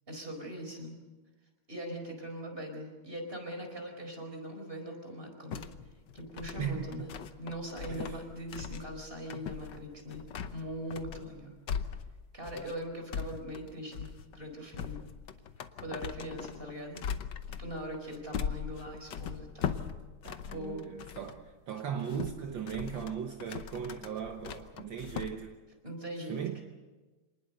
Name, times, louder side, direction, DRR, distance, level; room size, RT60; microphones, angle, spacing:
voice 1, 0.1-1.0 1.7-5.6 6.1-7.1 7.4-10.2 10.5-11.6 12.3-15.0 15.8-17.0 17.5-19.9 20.5-20.9 25.8-26.6, equal, 25° right, 4 dB, 4.8 m, -41 dB
sound 1, 5.5-21.4 21.8-25.4, left 7 dB, 60° left, 1.5 m, -40 dB
voice 2, 7.9-8.2 20.2-25.6 26.3-26.6, right 8 dB, 65° right, 4 dB, 1.9 m, -38 dB
27.0 x 20.0 x 6.7 m, 1.2 s
omnidirectional pair, 2.3 m